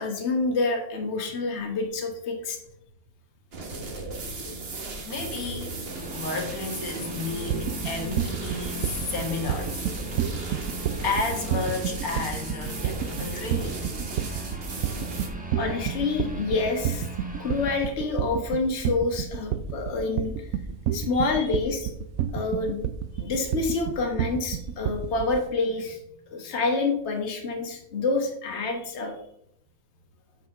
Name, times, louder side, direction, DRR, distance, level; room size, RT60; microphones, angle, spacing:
voice 1, 0.0-2.6 4.4-4.6 9.9-10.0 15.6-17.1 17.4-20.5 20.9-21.9 22.3-22.8 23.2-26.0 26.3-29.1, left 3 dB, 50° left, 2 dB, 1.6 m, -27 dB
sound 1, 3.5-15.3, right 3 dB, 45° right, 1.3 m, -36 dB
voice 2, 5.0-5.8 6.1-9.9 10.3-10.5 11.0-13.9 17.2-17.7 21.1-21.6 22.1-22.3, left 3 dB, 80° left, 1 dB, 1.9 m, -33 dB
sound 2, 5.9-17.8, right 1 dB, 5° right, 0.9 m, -40 dB
sound 3, 7.5-25.4, right 10 dB, 80° right, 1.0 m, -29 dB
8.2 x 4.2 x 5.5 m, 0.74 s
omnidirectional pair, 1.5 m